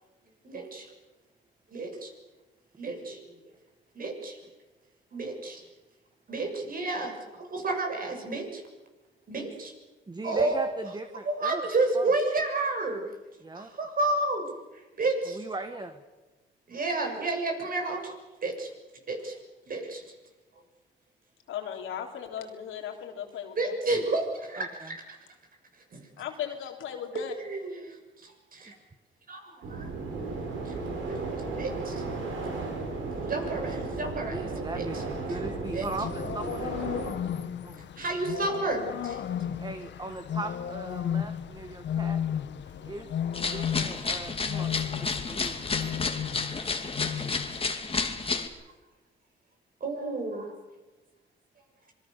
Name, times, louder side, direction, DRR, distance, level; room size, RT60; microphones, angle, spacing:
voice 1, 0.4-0.9 1.7-2.1 2.8-3.4 3.9-4.4 5.1-5.6 6.3-8.6 9.3-9.7 10.2-10.7 11.3-13.0 13.8-14.5 14.7-15.4 16.7-18.1 18.4-18.7 19.1-19.4 19.7-20.0 23.6-25.2 25.9-26.0 27.4-28.7 29.3-29.9 30.6-30.8 31.1-31.9 33.2-35.0 35.3-35.4 35.7-35.9 38.0-39.2 47.2-47.6 49.8-50.5, right 2 dB, 45° right, 3 dB, 6.9 m, -31 dB
voice 2, 10.1-11.6 11.9-12.1 13.4-13.7 15.3-16.0 24.6-24.9 28.7-28.8 33.3-33.8 34.3-36.9 37.6-37.9 39.6-42.2 42.8-43.1 43.4-45.7, right 2 dB, 20° right, 7 dB, 1.7 m, -39 dB
voice 3, 21.5-23.7 26.2-27.3, left 9 dB, 85° left, 3 dB, 3.6 m, -37 dB
sound 1, 29.6-37.1, right 3 dB, 75° right, 5.4 m, -35 dB
sound 2, 35.6-47.7, left 9 dB, 65° left, 1.4 m, -34 dB
sound 3, 43.3-48.5, left 4 dB, 30° left, 2.6 m, -31 dB
26.0 x 22.0 x 6.9 m, 1.2 s
cardioid pair, 90°, 20 cm